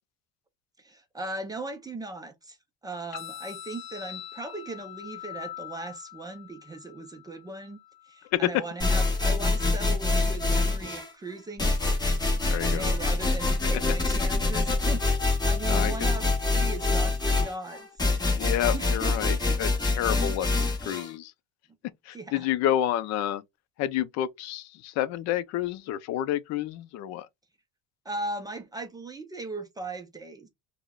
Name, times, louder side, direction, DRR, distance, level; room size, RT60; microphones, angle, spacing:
voice 1, 0.8-2.6 2.8-7.8 8.0-11.8 12.7-15.0 15.4-17.9 18.7-19.6 22.1-22.5 28.1-30.5, right 2 dB, 15° right, 0.4 m, -38 dB
sound 1, 3.1-11.1, left 12 dB, 40° left, 1.7 m, -45 dB
voice 2, 8.3-8.6 12.5-12.9 15.7-15.9 18.3-21.3 22.1-23.4 23.8-27.3, left 12 dB, 55° left, 0.4 m, -29 dB
sound 2, 8.8-11.1 11.6-21.1, left 3 dB, 15° left, 1.0 m, -25 dB
4.6 x 2.1 x 2.2 m
cardioid pair, 150°, 31 cm